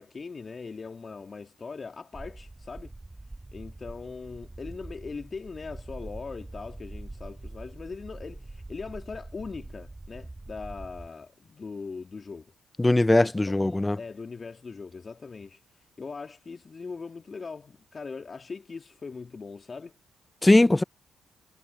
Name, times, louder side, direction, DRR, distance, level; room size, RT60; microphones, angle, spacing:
voice 1, 0.0-2.9 3.5-12.5 13.2-19.9, left 4 dB, 40° left, 2.1 m, -40 dB
sound 1, 2.1-11.1, right 2 dB, 20° right, 7.2 m, -44 dB
voice 2, 12.8-14.0 20.4-20.8, left 2 dB, 15° left, 0.7 m, -20 dB
hypercardioid pair, 50°, 0 cm